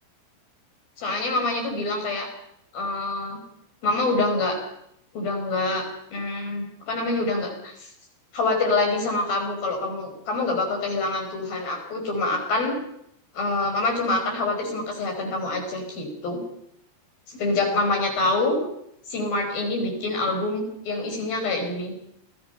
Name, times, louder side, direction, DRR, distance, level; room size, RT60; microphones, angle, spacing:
voice 1, 1.0-2.3 2.7-3.4 3.8-4.6 5.1-7.9 8.3-12.7 13.3-16.4 17.3-18.6 19.1-21.9, left 2 dB, 55° left, 3 dB, 6.7 m, -26 dB
28.0 x 19.5 x 5.7 m, 0.76 s
omnidirectional pair, 5.3 m